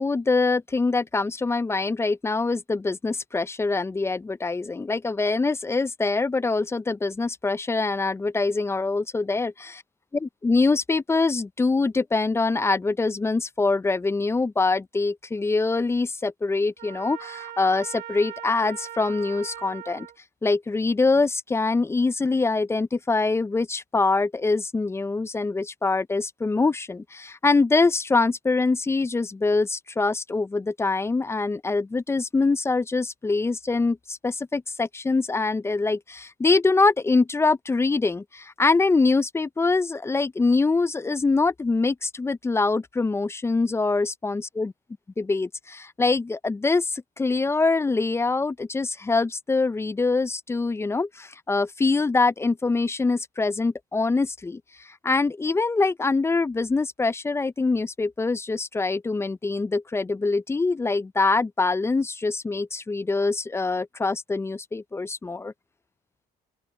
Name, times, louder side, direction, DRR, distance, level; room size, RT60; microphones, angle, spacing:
voice 1, 0.0-9.8 10.1-20.1 20.4-44.7 45.2-65.5, left 3 dB, 15° left, 0.4 m, -24 dB
Trumpet, 16.8-20.2, right 11 dB, 55° right, 3.4 m, -39 dB
open air
cardioid pair, 110°, 17 cm